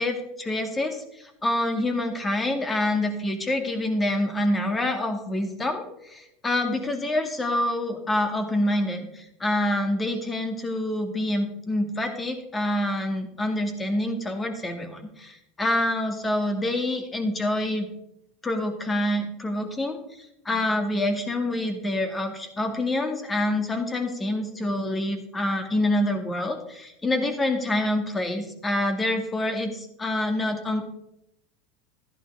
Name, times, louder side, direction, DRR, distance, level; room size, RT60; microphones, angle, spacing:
voice 1, 0.0-17.9 18.4-30.8, left 1 dB, 20° left, 6 dB, 2.1 m, -26 dB
12.5 x 10.5 x 3.5 m, 0.82 s
hypercardioid pair, 100°, 0 cm